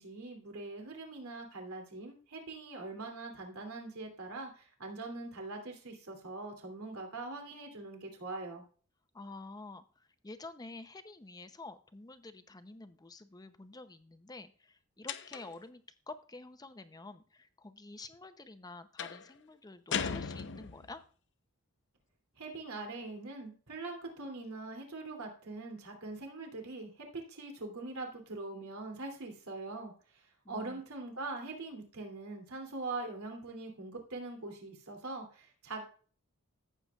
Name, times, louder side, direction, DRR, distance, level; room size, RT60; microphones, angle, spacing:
voice 1, 0.0-8.6 22.4-30.2 30.5-35.8, right 3 dB, 90° right, 2 dB, 2.8 m, -42 dB
voice 2, 9.1-21.0 30.4-30.8, left 3 dB, 20° left, 10 dB, 0.6 m, -49 dB
sound 1, 15.1-15.7 19.0-19.3 19.9-21.0, left 6 dB, 55° left, 0.7 m, -37 dB
14.5 x 7.8 x 2.4 m, 0.40 s
head